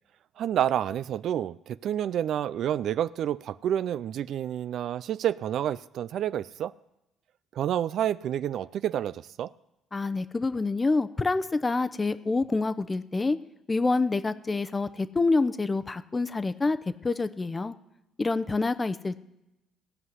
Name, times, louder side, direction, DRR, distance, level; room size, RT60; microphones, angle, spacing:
voice 1, 0.4-6.7 7.6-9.5, right 10 dB, 65° right, 16 dB, 0.4 m, -29 dB
voice 2, 9.9-13.4 13.7-16.8 17.0-17.7 18.2-19.2, left 3 dB, 25° left, 13 dB, 0.8 m, -27 dB
17.0 x 5.7 x 9.5 m, 0.91 s
supercardioid pair, 80°, 0 cm